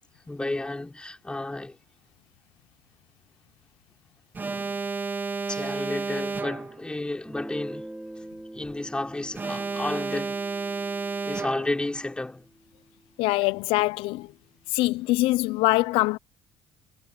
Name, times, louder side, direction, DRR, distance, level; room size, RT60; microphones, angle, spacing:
voice 1, 0.3-1.8 5.5-7.9 8.5-10.4 11.3-12.5, left 2 dB, 10° left, 3.8 m, -32 dB
Alarm, 4.3-6.9 9.3-11.9, right 4 dB, 20° right, 1.3 m, -31 dB
Guitar, 7.2-12.7, right 1 dB, 5° right, 2.9 m, -44 dB
voice 2, 13.2-14.3 14.7-16.2, left 20 dB, 90° left, 0.6 m, -23 dB
cardioid pair, 120°, 9 cm